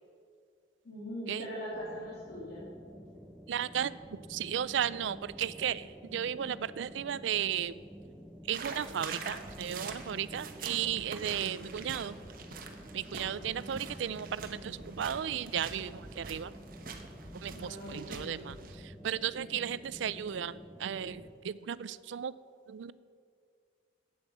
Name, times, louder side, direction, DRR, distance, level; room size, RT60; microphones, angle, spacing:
voice 1, 0.8-2.7 17.5-18.4, equal, 55° left, -6 dB, 2.7 m, -41 dB
sound 1, 1.7-21.3, equal, 5° left, 0.7 m, -50 dB
voice 2, 3.5-3.9 4.3-7.8 8.5-12.2 12.9-16.5 17.4-18.6 18.8-22.3 22.7-22.9, right 9 dB, 70° right, 18 dB, 0.4 m, -35 dB
sound 2, 8.5-18.7, right 4 dB, 50° right, 1.0 m, -45 dB
9.2 x 8.6 x 7.2 m, 2.2 s
head